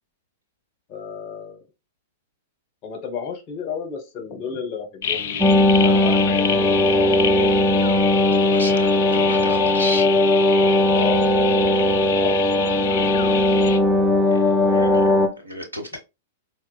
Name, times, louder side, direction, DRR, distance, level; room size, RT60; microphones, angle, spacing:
voice 1, 0.9-1.6 2.8-7.5 10.9-11.2 11.5-13.4, left 6 dB, 40° left, 0.8 m, -33 dB
sound 1, 5.0-13.8, left 8 dB, 55° left, 0.3 m, -28 dB
sound 2, 5.4-15.3, left 1 dB, 5° right, 0.6 m, -18 dB
voice 2, 8.3-10.1 14.3-16.0, equal, 85° right, 0.8 m, -34 dB
4.2 x 2.1 x 2.3 m
figure-of-eight pair, 100°, 0 cm